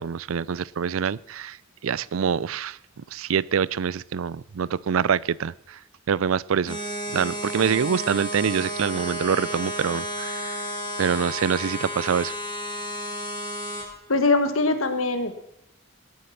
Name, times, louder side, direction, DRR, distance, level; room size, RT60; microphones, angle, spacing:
voice 1, 0.0-1.6 1.8-2.8 3.1-5.8 6.1-6.8 7.1-10.6 11.0-12.3, right 7 dB, 75° right, 22 dB, 0.4 m, -25 dB
sound 1, 6.7-13.8, equal, 25° left, 6.7 m, -32 dB
voice 2, 14.1-15.4, left 3 dB, 75° left, 9 dB, 1.6 m, -22 dB
19.0 x 8.5 x 5.8 m, 0.83 s
head